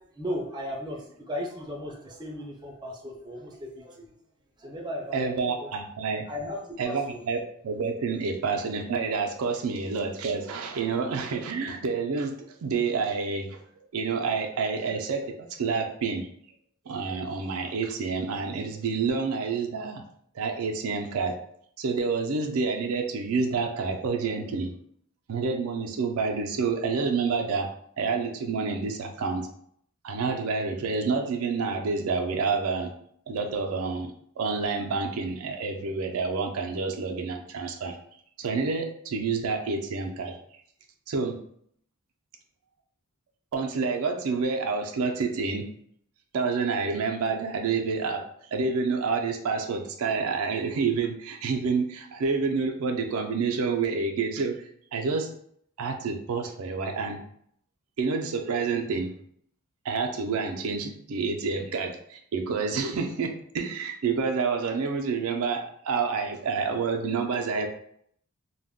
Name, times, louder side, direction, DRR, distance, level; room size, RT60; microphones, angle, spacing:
voice 1, 0.0-4.1 4.6-5.3 5.6-5.7 6.3-6.6 6.8-7.2, equal, 20° right, 0 dB, 0.4 m, -36 dB
voice 2, 5.1-6.3 6.8-13.6 13.9-16.3 16.9-20.0 20.3-21.3 21.8-24.7 25.3-27.7 28.0-29.5 30.0-32.9 33.3-38.0 38.4-40.4 41.1-41.3 43.5-45.7 46.3-48.2 48.5-54.6 54.9-55.3 55.8-57.2 58.0-59.1 59.8-67.7, right 4 dB, 80° right, 3 dB, 0.4 m, -28 dB
2.2 x 2.1 x 3.5 m, 0.67 s
head